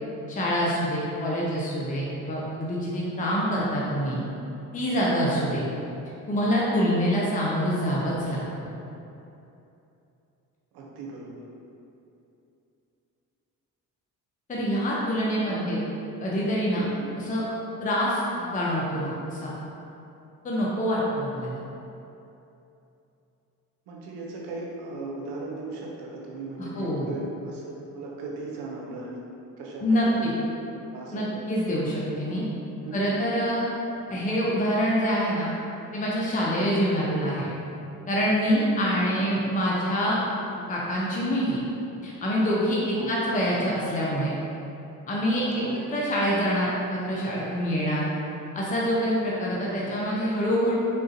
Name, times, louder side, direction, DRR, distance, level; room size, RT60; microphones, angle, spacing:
voice 1, 0.3-4.2 4.7-5.6 6.3-8.4 14.5-15.8 16.2-16.8 17.2-17.4 17.8-19.5 20.4-21.6 26.6-27.1 29.8-30.3 31.1-32.4 32.9-33.6 34.1-35.5 35.9-37.5 38.1-40.2 40.7-41.6 42.0-44.3 45.1-45.6 45.9-48.1 48.5-50.7, equal, 20° left, -5 dB, 0.6 m, -26 dB
voice 2, 1.2-1.5 7.1-7.3 10.7-11.3 15.4-15.9 16.7-17.1 23.9-29.2 29.6-30.5 30.9-31.8 32.8-33.2 34.1-34.2 37.1-37.3 39.1-39.3 42.9-43.2 45.6-45.9 49.8-50.0, right 3 dB, 75° right, -3 dB, 0.7 m, -38 dB
3.7 x 2.5 x 2.7 m, 2.8 s
hypercardioid pair, 55°, 39 cm